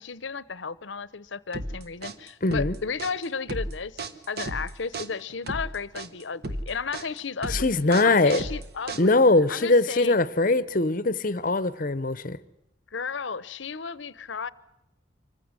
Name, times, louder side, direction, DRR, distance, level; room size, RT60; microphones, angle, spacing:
voice 1, 0.0-4.0 4.3-9.2 9.5-10.2 12.9-14.5, left 5 dB, 85° left, 0.9 m, -34 dB
sound 1, 1.5-9.4, right 1 dB, 55° right, 1.4 m, -34 dB
voice 2, 2.4-2.8 7.5-8.4 9.0-12.4, left 2 dB, 45° left, 0.9 m, -22 dB
25.5 x 15.5 x 9.6 m
head